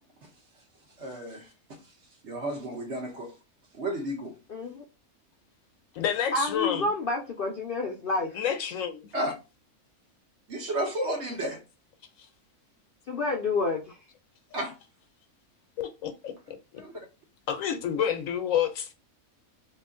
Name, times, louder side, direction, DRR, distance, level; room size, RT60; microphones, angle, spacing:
voice 1, 1.0-1.5 2.2-3.3 3.7-4.3 9.1-9.3 10.5-11.6 14.5-14.7 16.8-17.0, right 1 dB, 55° right, 1.2 m, -32 dB
voice 2, 4.5-4.8 6.3-8.4 13.1-14.0, left 3 dB, 55° left, 0.6 m, -29 dB
voice 3, 5.9-6.8 8.3-9.1 15.8-16.8 17.5-18.9, left 8 dB, 75° left, 1.0 m, -29 dB
3.0 x 2.9 x 3.6 m
omnidirectional pair, 1.5 m